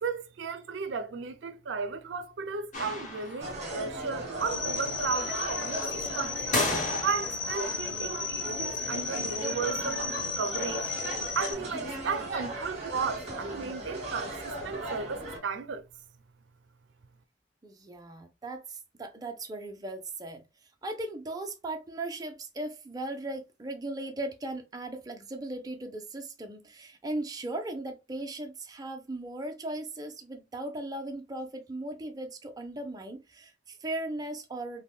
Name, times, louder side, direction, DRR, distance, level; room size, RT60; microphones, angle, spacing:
voice 1, 0.0-6.4 7.0-10.0 10.4-10.9 11.4-15.9, right 5 dB, 80° right, 0.4 m, -34 dB
sound 1, 2.7-3.7 6.5-7.5, left 2 dB, 45° left, 1.0 m, -32 dB
sound 2, 3.4-15.4, right 2 dB, 40° right, 1.3 m, -37 dB
sound 3, 4.4-11.5, left 5 dB, 85° left, 0.4 m, -35 dB
voice 2, 17.6-20.4 20.8-34.8, right 2 dB, 20° right, 0.5 m, -37 dB
3.4 x 2.1 x 2.3 m
head